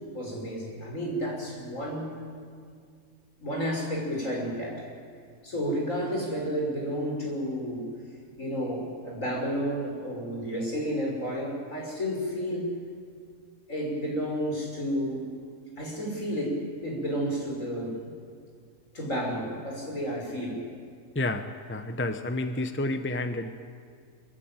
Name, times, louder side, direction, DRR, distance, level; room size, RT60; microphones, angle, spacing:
voice 1, 0.1-2.2 3.4-4.9 5.4-7.9 8.4-12.7 13.7-15.3 15.8-18.0 18.9-20.7, equal, 65° left, -1 dB, 6.7 m, -31 dB
voice 2, 21.1-23.5, left 2 dB, 10° left, 8 dB, 0.9 m, -30 dB
25.5 x 24.5 x 9.1 m, 2.1 s
omnidirectional pair, 1.5 m